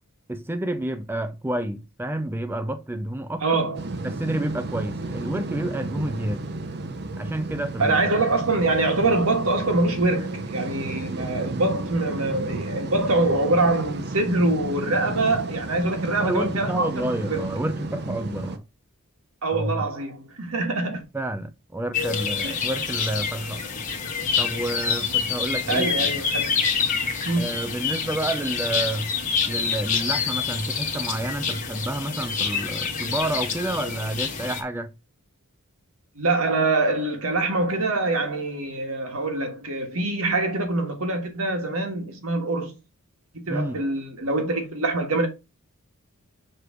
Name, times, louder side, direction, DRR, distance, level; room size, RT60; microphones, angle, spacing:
voice 1, 0.3-3.7 4.0-6.5 7.2-8.1 16.2-18.6 19.5-19.9 21.1-23.7 24.4-25.9 27.4-29.1 29.5-34.9 43.5-43.8, right 1 dB, 10° right, 0.4 m, -29 dB
voice 2, 3.4-3.8 7.8-16.9 17.3-17.5 19.4-21.0 22.4-22.6 25.7-26.5 27.2-27.5 36.1-42.7 43.3-45.3, right 2 dB, 70° right, 1.6 m, -24 dB
sound 1, 3.7-18.6, right 2 dB, 50° right, 0.8 m, -33 dB
sound 2, 21.9-34.6, left 6 dB, 35° left, 1.5 m, -27 dB
6.8 x 3.2 x 4.8 m
head